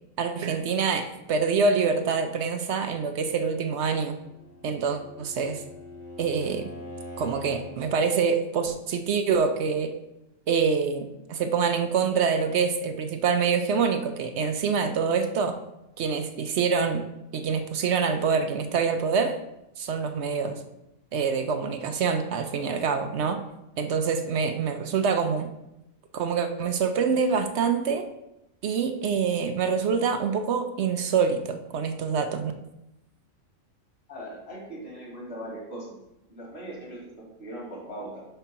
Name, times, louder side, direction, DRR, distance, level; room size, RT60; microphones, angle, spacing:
voice 1, 0.2-4.2 4.6-5.6 6.2-6.7 7.2-9.9 10.5-15.6 16.0-17.0 17.3-19.4 19.8-20.6 21.1-23.4 23.8-25.5 26.1-28.0 28.6-32.5, right 5 dB, 65° right, 7 dB, 0.8 m, -26 dB
Bowed string instrument, 4.2-7.8, left 1 dB, 30° left, 1.3 m, -43 dB
voice 2, 34.1-36.0 36.3-38.3, right 1 dB, 50° left, -3 dB, 2.3 m, -39 dB
4.9 x 4.5 x 5.7 m, 0.89 s
omnidirectional pair, 1.4 m